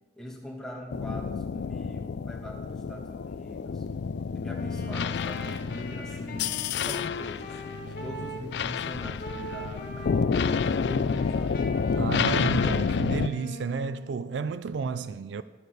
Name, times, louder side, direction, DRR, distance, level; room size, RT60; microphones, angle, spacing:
voice 1, 0.2-3.8 4.3-6.6 6.8-10.1 10.5-11.6, left 1 dB, 5° left, 1.5 m, -42 dB
sound 1, 0.9-13.3, left 5 dB, 65° left, 0.3 m, -29 dB
Wind instrument woodwind instrument, 4.5-8.7 9.2-10.6 11.0-14.2, equal, 50° left, 1.3 m, -41 dB
voice 2, 12.0-15.4, right 5 dB, 75° right, 0.4 m, -31 dB
12.5 x 6.6 x 6.5 m
head